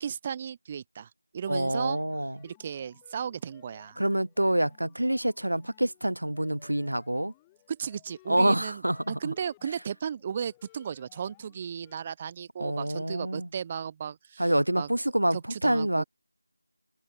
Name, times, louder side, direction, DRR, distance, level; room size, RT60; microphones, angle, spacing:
voice 1, 0.0-1.1 1.3-2.0 2.4-4.0 7.7-8.8 9.1-14.5 14.8-14.9 15.3-16.0, right 7 dB, 15° right, 0.6 m, -35 dB
sound 1, 1.5-12.0, left 19 dB, 10° left, 1.5 m, -60 dB
voice 2, 1.5-2.4 4.0-7.3 8.3-9.3 12.6-13.5 14.4-16.0, right 1 dB, 70° right, 0.4 m, -27 dB
figure-of-eight pair, 170°, 0 cm